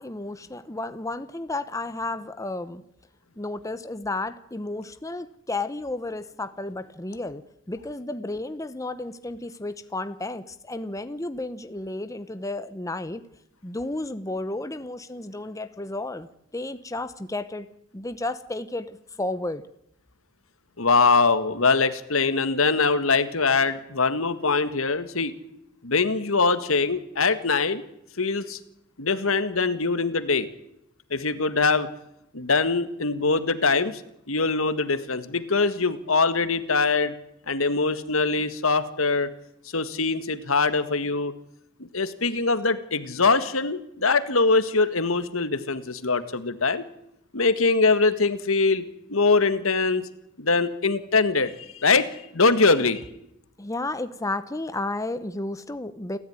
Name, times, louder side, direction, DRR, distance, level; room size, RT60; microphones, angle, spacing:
voice 1, 0.0-2.8 3.4-7.4 7.7-13.2 13.6-16.3 16.5-17.7 17.9-19.6 53.6-56.2, left 2 dB, 15° left, 11 dB, 0.9 m, -32 dB
voice 2, 20.8-25.3 25.8-27.8 28.2-28.6 29.0-30.5 31.1-31.9 32.3-34.0 34.3-37.1 37.5-39.3 39.7-41.3 41.8-46.8 47.3-50.1 50.4-53.0, left 4 dB, 75° left, 12 dB, 1.8 m, -23 dB
29.0 x 14.5 x 9.7 m, 0.81 s
head